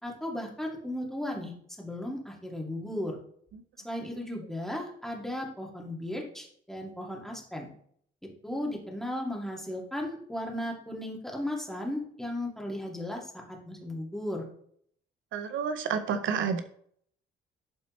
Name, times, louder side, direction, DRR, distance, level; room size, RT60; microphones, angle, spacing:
voice 1, 0.0-3.2 3.8-7.7 8.4-14.5, left 1 dB, ahead, -1 dB, 2.2 m, -36 dB
voice 2, 15.3-16.6, right 6 dB, 75° right, 9 dB, 0.8 m, -29 dB
11.5 x 4.2 x 3.1 m, 0.62 s
cardioid pair, 90°, 20 cm